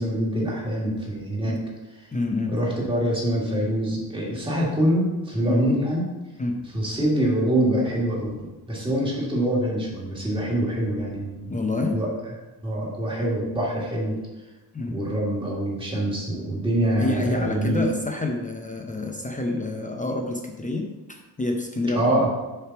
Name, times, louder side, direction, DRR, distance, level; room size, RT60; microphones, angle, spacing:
voice 1, 0.0-1.6 2.5-6.1 6.7-11.5 11.9-12.1 12.6-14.2 14.9-17.8 22.0-22.3, right 1 dB, 10° right, -4 dB, 1.8 m, -25 dB
voice 2, 2.1-2.5 5.5-5.6 6.4-6.6 11.5-12.0 14.7-15.0 17.0-22.1, left 2 dB, 20° left, 2 dB, 0.6 m, -28 dB
6.7 x 4.6 x 5.8 m, 1.1 s
wide cardioid pair, 180°, 40 cm